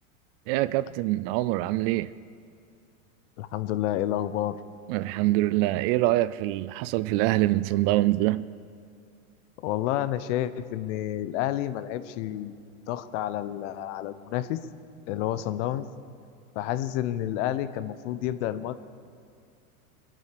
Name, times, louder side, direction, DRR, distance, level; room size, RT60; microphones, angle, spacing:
voice 1, 0.5-2.1 4.9-8.5, right 17 dB, 45° right, 0.5 m, -24 dB
voice 2, 3.4-4.6 9.6-12.6 12.9-14.6 15.1-15.9 16.5-18.7, left 12 dB, 55° left, 1.0 m, -29 dB
22.0 x 9.2 x 6.8 m
hypercardioid pair, 105°, 42 cm